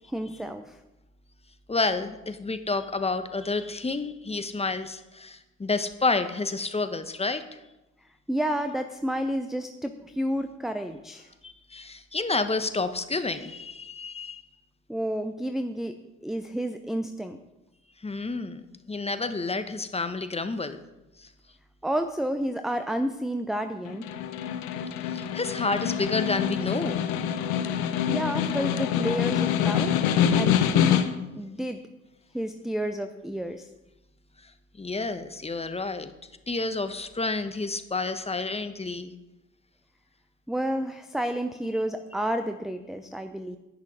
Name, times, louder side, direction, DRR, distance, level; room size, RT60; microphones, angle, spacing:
voice 1, 0.1-0.8 8.3-11.3 14.9-17.4 21.8-24.1 28.1-29.9 30.4-31.0 31.3-31.8 32.3-33.7 40.5-43.6, right 1 dB, ahead, 8 dB, 0.7 m, -30 dB
voice 2, 1.7-7.4 11.4-14.4 18.0-20.8 21.2-21.3 25.1-27.0 34.4-34.5 34.8-36.1 36.5-39.1, left 3 dB, 15° left, 10 dB, 1.1 m, -29 dB
Snare drum, 23.9-31.3, left 9 dB, 65° left, 1.1 m, -26 dB
10.5 x 10.0 x 4.9 m, 0.98 s
figure-of-eight pair, 55°, 40 cm